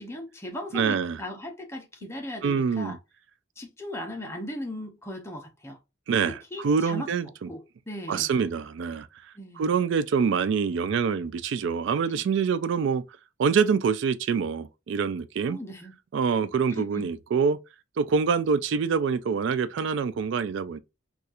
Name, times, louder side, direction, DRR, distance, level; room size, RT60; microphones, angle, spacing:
voice 1, 0.0-3.0 3.6-5.8 6.5-7.1 7.5-8.3 9.4-9.8 15.5-16.0 16.7-17.1, left 1 dB, 15° left, 0.7 m, -37 dB
voice 2, 0.7-1.2 2.4-3.0 6.1-7.5 8.1-9.1 9.6-13.0 13.4-15.6 16.1-17.6 18.0-20.8, right 6 dB, 65° right, 0.3 m, -25 dB
4.1 x 2.4 x 2.4 m
head